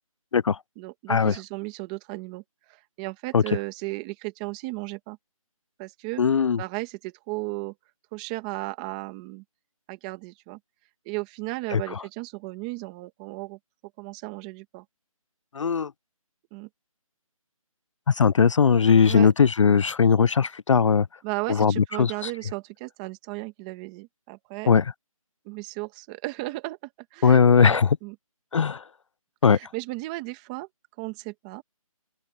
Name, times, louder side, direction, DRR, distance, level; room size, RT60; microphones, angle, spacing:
voice 1, 0.8-2.4 2.7-5.2 5.8-7.7 8.1-9.4 9.9-10.6 11.0-13.6 14.0-14.8 16.5-16.7 19.1-19.3 21.2-24.7 25.4-26.8 27.1-28.1 29.4-30.7 31.0-31.6, right 23 dB, 10° right, 1.4 m, -35 dB
voice 2, 6.2-6.6 11.7-11.8 15.5-15.9 18.1-21.1 21.5-21.7 22.0-22.1 24.7-24.8 27.2-27.9 28.5-28.8 29.4-29.6, left 6 dB, 60° left, 0.4 m, -19 dB
open air
hypercardioid pair, 170°, 18 cm